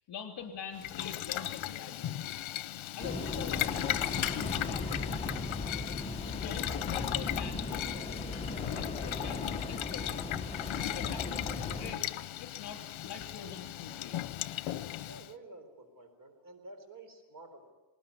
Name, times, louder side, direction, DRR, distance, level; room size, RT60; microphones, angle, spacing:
voice 1, 0.1-2.3 2.9-5.6 6.3-8.2 8.7-10.2 10.8-12.0 12.4-14.2, left 7 dB, 60° left, 5 dB, 3.8 m, -45 dB
Boiling, 0.8-15.3, left 13 dB, 75° left, 0.9 m, -37 dB
sound 1, 3.0-11.9, left 2 dB, 15° left, 1.1 m, -37 dB
voice 2, 15.0-17.7, right 2 dB, 45° right, 6 dB, 4.1 m, -51 dB
19.5 x 19.5 x 9.5 m, 1.1 s
cardioid pair, 150°, 47 cm